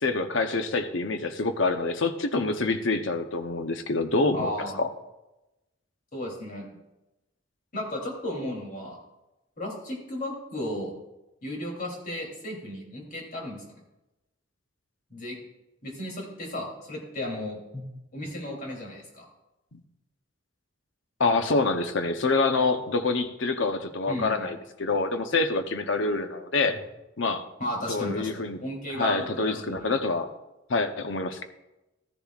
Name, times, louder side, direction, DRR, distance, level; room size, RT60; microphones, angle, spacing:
voice 1, 0.0-4.5 4.8-4.9 21.2-26.7 27.2-27.4 27.9-28.6 28.9-30.3 30.7-31.4, left 3 dB, 70° left, 7 dB, 0.8 m, -26 dB
voice 2, 4.3-4.8 6.1-6.7 7.7-9.0 9.6-10.9 11.4-13.6 15.1-15.4 15.8-17.8 18.1-19.2 24.0-24.5 26.7-26.8 27.6-28.3 28.6-29.9, left 1 dB, 45° left, -1 dB, 3.1 m, -34 dB
14.5 x 10.5 x 2.4 m, 0.98 s
head